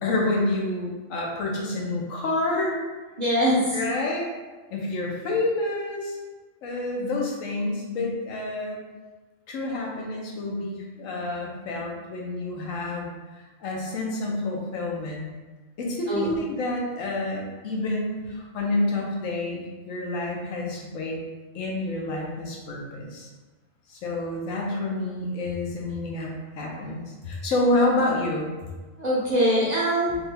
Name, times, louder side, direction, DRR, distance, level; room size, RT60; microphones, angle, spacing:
voice 1, 0.0-2.8 3.7-4.3 4.7-6.2 6.6-8.8 9.5-15.3 15.8-21.2 21.5-23.3 23.9-28.5, left 2 dB, 85° left, -1 dB, 1.1 m, -28 dB
voice 2, 3.2-3.8 16.1-16.3 29.0-30.2, equal, 45° right, -7 dB, 0.6 m, -22 dB
3.5 x 2.1 x 3.3 m, 1.2 s
omnidirectional pair, 1.3 m